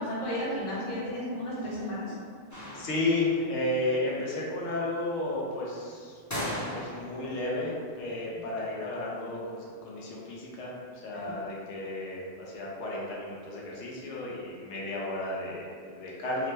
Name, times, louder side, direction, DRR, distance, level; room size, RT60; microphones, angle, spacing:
voice 1, 0.0-2.0 11.1-11.3, equal, 45° left, -8 dB, 0.9 m, -33 dB
sound 1, 2.5-3.5 6.3-7.3, left 1 dB, 20° left, 0.6 m, -36 dB
voice 2, 2.7-6.2 6.5-10.7 11.0-16.5, left 2 dB, 85° left, -4 dB, 0.9 m, -33 dB
2.8 x 2.1 x 3.2 m, 2.1 s
omnidirectional pair, 1.2 m